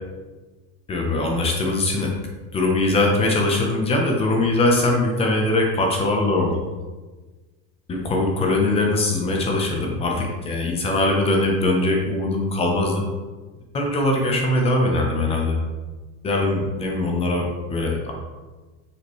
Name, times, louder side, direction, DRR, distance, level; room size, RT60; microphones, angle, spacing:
voice 1, 0.9-2.1 2.5-6.6 7.9-13.0 13.7-15.6 16.2-18.1, left 2 dB, 20° left, 1 dB, 0.8 m, -21 dB
6.8 x 5.0 x 3.1 m, 1.3 s
cardioid pair, 170°, 33 cm